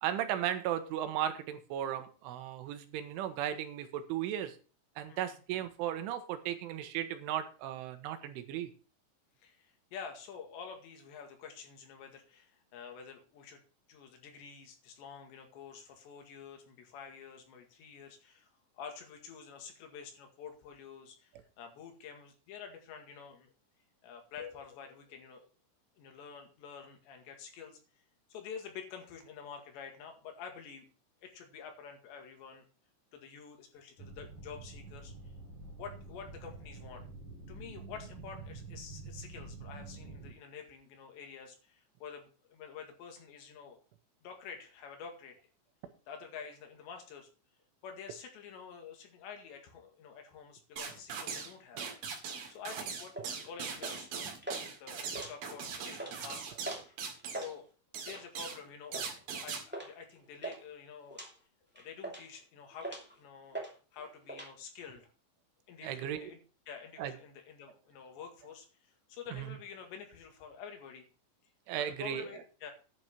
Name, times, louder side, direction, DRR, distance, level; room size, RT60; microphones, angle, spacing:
voice 1, 0.0-4.6 5.0-8.7 51.8-51.9 65.8-66.3 67.0-67.1 69.3-69.5 71.7-72.3, right 11 dB, 85° right, 9 dB, 3.7 m, -36 dB
voice 2, 9.4-13.6 13.9-18.5 18.7-23.5 24.0-25.5 26.0-27.8 28.3-30.9 31.2-32.7 33.1-35.3 35.8-37.0 37.5-43.8 44.2-45.4 46.1-47.3 47.8-52.2 52.5-53.2 53.4-56.4 56.9-57.0 57.3-57.7 58.0-59.0 59.4-61.2 61.7-65.1 65.7-66.4 66.7-71.1 71.8-72.7, left 6 dB, 70° left, 4 dB, 4.0 m, -48 dB
sound 1, 34.0-40.3, right 3 dB, 45° left, 5.4 m, -47 dB
sound 2, 50.8-51.5 51.8-57.5 57.9-58.6 58.9-59.6, right 6 dB, 55° right, 3.5 m, -40 dB
sound 3, 53.1-53.4 53.8-54.1 54.4-54.6 55.0-55.6 55.9-56.1 56.6-56.9 57.2-57.5 58.1-58.3 58.9-59.1 59.7-59.9 60.2-60.6 61.1-61.3 61.7-62.3 62.8-63.1 63.5-63.7 64.0-64.5, right 2 dB, 10° right, 0.5 m, -41 dB
11.0 x 6.1 x 6.0 m, 0.36 s
omnidirectional pair, 5.5 m